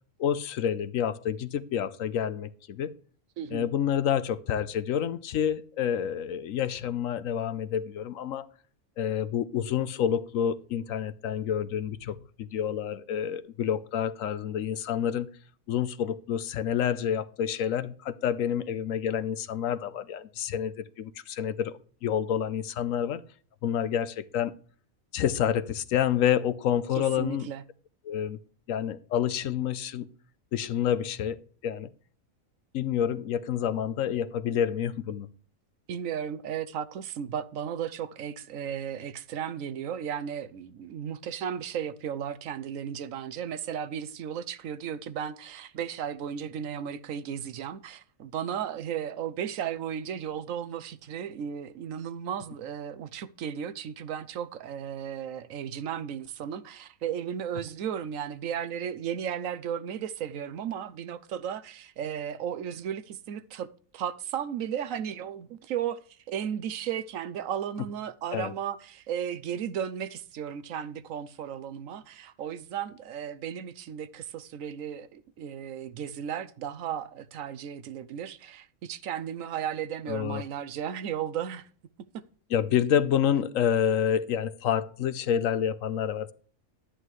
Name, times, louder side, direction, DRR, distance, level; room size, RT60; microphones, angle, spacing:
voice 1, 0.2-2.9 3.5-8.5 9.0-15.3 15.7-23.2 23.6-24.5 25.1-27.5 28.0-28.4 28.7-30.1 30.5-31.9 32.7-35.3 68.3-68.5 80.1-80.4 82.5-86.3, left 9 dB, 75° left, 1.1 m, -28 dB
voice 2, 3.4-3.7 27.2-27.6 35.9-63.7 63.9-81.7 82.1-82.2, right 9 dB, 75° right, 1.0 m, -35 dB
11.5 x 9.9 x 3.1 m
omnidirectional pair, 1.5 m